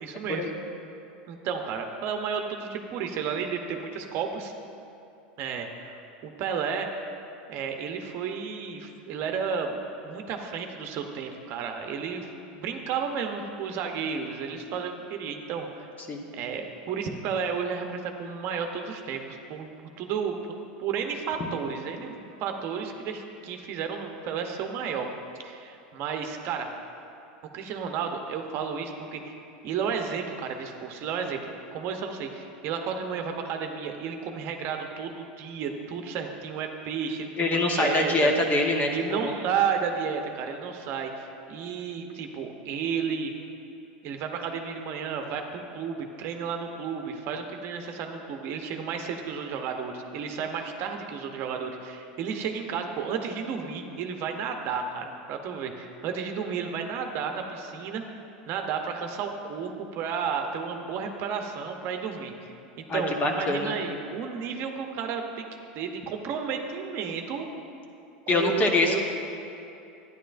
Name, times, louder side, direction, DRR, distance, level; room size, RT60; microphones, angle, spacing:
voice 1, 0.0-0.5 1.3-4.5 5.4-6.0 6.2-7.0 7.5-15.9 16.3-19.7 20.0-20.4 20.8-25.1 25.4-26.7 27.5-29.4 29.6-38.3 38.9-43.3 44.0-58.0 58.5-65.4 65.8-67.5 68.3-69.0, right 6 dB, 50° right, 4 dB, 0.7 m, -32 dB
voice 2, 37.4-39.3 62.9-63.7 68.3-69.0, left 2 dB, 30° left, 2 dB, 1.0 m, -24 dB
11.5 x 9.6 x 2.5 m, 2.7 s
supercardioid pair, 115°, 5 cm